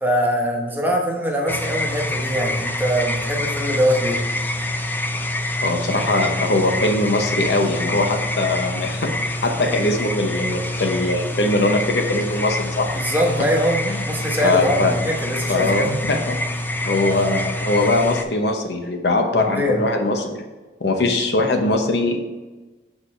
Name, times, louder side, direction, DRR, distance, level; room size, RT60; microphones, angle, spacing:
voice 1, 0.0-4.2 12.9-15.9 19.5-19.8, equal, 10° right, 0 dB, 1.0 m, -22 dB
sound 1, 1.5-18.2, left 1 dB, 10° left, 0.4 m, -26 dB
voice 2, 5.6-12.9 13.4-13.5 13.8-14.0 14.4-15.0 15.5-16.4 16.8-20.4 20.8-22.2, left 2 dB, 70° left, 4 dB, 0.8 m, -21 dB
6.7 x 4.8 x 4.3 m, 1.2 s
head